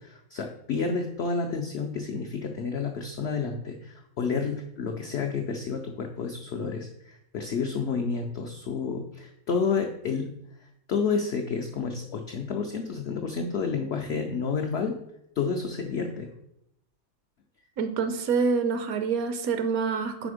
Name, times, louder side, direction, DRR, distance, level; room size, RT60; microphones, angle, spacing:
voice 1, 0.0-10.3 10.9-15.0 15.4-16.3, left 5 dB, 80° left, 4 dB, 0.6 m, -30 dB
voice 2, 17.8-20.3, right 5 dB, 70° right, 9 dB, 1.0 m, -26 dB
5.0 x 4.3 x 4.9 m, 0.78 s
omnidirectional pair, 1.7 m